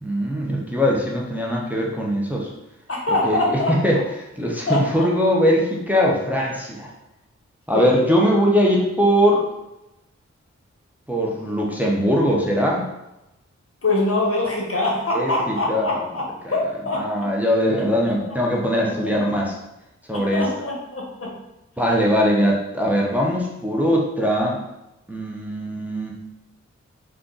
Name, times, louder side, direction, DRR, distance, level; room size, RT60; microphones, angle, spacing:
voice 1, 0.0-2.5 3.2-4.0 4.4-6.9 7.7-9.5 11.1-12.9 15.1-16.0 16.4-16.5 16.9-19.6 20.1-20.4 21.8-24.6 25.1-26.2, equal, 5° right, -3 dB, 0.8 m, -21 dB
voice 2, 2.9-3.8 4.7-5.0 7.7-7.9 13.8-16.2 16.5-17.0 20.1-21.3, left 2 dB, 50° left, -2 dB, 1.1 m, -23 dB
3.7 x 2.5 x 3.8 m, 0.92 s
cardioid pair, 45°, 29 cm